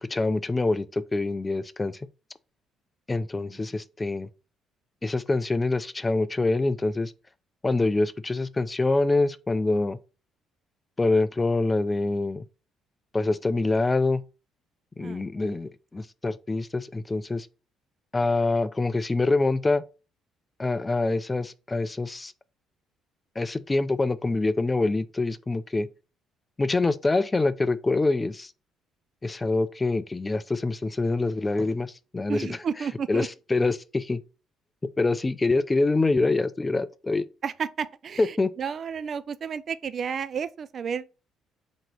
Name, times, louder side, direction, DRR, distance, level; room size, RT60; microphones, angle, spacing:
voice 1, 0.0-2.0 3.1-4.3 5.0-7.1 7.6-10.0 11.0-12.5 13.1-14.2 15.0-17.5 18.1-19.8 20.6-22.3 23.4-25.9 26.6-28.5 29.2-32.6 33.1-34.2 35.0-37.2 38.2-38.5, left 3 dB, 25° left, 0.4 m, -25 dB
voice 2, 15.0-15.6 32.3-33.3 37.4-41.1, right 6 dB, 50° right, 0.3 m, -32 dB
3.7 x 2.9 x 3.7 m
hypercardioid pair, 60°, 0 cm